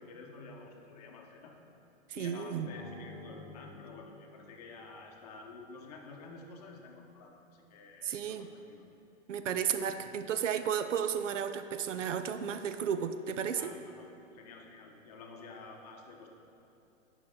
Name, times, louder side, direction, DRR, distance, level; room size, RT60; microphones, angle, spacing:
voice 1, 0.0-1.6 2.1-8.8 13.6-16.3, left 4 dB, 30° left, 2 dB, 0.8 m, -50 dB
voice 2, 2.1-2.7 8.0-8.5 9.3-13.7, right 8 dB, 70° right, 10 dB, 0.7 m, -33 dB
sound 1, 2.5-5.2, left 2 dB, 5° left, 0.4 m, -51 dB
10.0 x 6.0 x 3.8 m, 2.9 s
hypercardioid pair, 165°, 38 cm